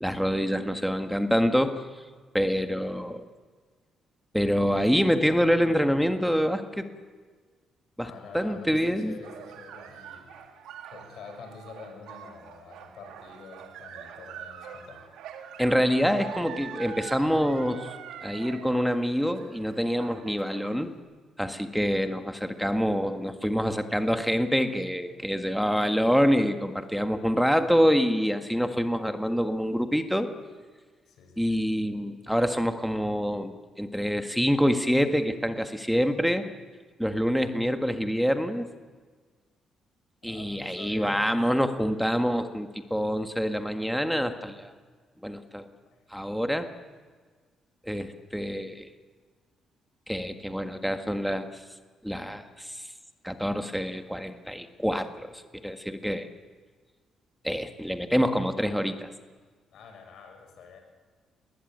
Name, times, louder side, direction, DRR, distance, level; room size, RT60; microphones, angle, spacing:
voice 1, 0.0-1.8 2.3-3.2 4.3-6.9 8.0-9.2 15.6-17.9 18.2-20.9 21.4-30.3 31.4-36.5 37.0-38.7 40.2-44.7 45.2-45.7 46.1-46.7 47.9-48.9 50.1-51.6 52.0-52.9 53.2-56.3 57.4-59.1, equal, ahead, 7 dB, 1.6 m, -26 dB
voice 2, 8.0-10.3 10.8-15.0 31.1-31.7 40.2-41.3 45.9-46.0 59.7-60.8, left 5 dB, 70° left, 4 dB, 6.2 m, -47 dB
sound 1, 9.2-20.9, right 8 dB, 90° right, 2.2 m, -44 dB
20.5 x 19.0 x 9.4 m, 1.5 s
cardioid pair, 90°, 0 cm